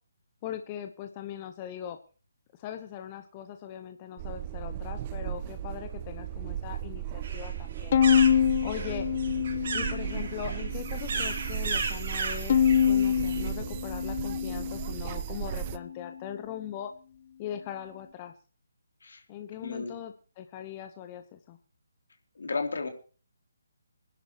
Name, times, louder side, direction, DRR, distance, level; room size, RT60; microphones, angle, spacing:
voice 1, 0.4-2.0 2.5-8.0 8.6-9.1 9.7-16.9 17.4-18.3 19.3-21.6, left 10 dB, 25° left, 8 dB, 1.0 m, -40 dB
sound 1, 4.2-15.8, right 11 dB, 30° right, 0.7 m, -36 dB
sound 2, 7.2-13.5, right 4 dB, 50° right, 3.8 m, -35 dB
Bowed string instrument, 7.9-10.3 10.7-11.5 12.5-15.0, left 8 dB, 45° left, 0.6 m, -25 dB
voice 2, 19.6-19.9 22.3-22.9, left 4 dB, 70° left, 4 dB, 3.2 m, -33 dB
25.0 x 11.0 x 3.0 m, 0.38 s
figure-of-eight pair, 145°, 0 cm